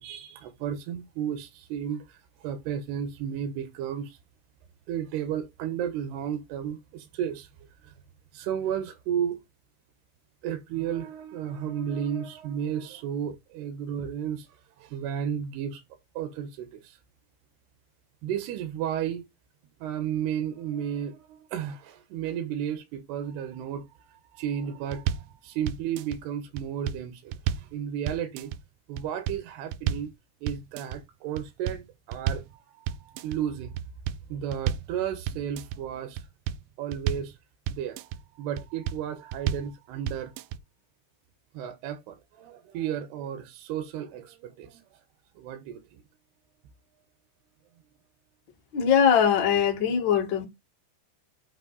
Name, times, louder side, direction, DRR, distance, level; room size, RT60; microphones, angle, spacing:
voice 1, 0.0-4.2 4.9-7.9 8.3-9.4 10.4-15.8 16.1-17.0 18.2-19.3 19.8-28.5 28.9-30.1 30.4-33.8 34.3-36.3 36.8-37.4 37.7-40.4 41.5-45.0 45.4-46.0, right 9 dB, 70° right, 2.8 m, -33 dB
sound 1, 24.9-25.3 25.7-26.2 26.6-27.7 28.1-28.6 29.0-29.4 29.7-30.1 30.5-31.0 31.4-32.5 32.9-33.4 33.8-34.9 35.3-35.8 36.2-37.3 37.7-38.2 38.6-39.0 39.3-39.7 40.1-40.6, right 10 dB, 85° right, 3.0 m, -31 dB
voice 2, 48.7-50.4, left 8 dB, 75° left, 1.0 m, -21 dB
8.3 x 4.2 x 4.0 m
omnidirectional pair, 5.3 m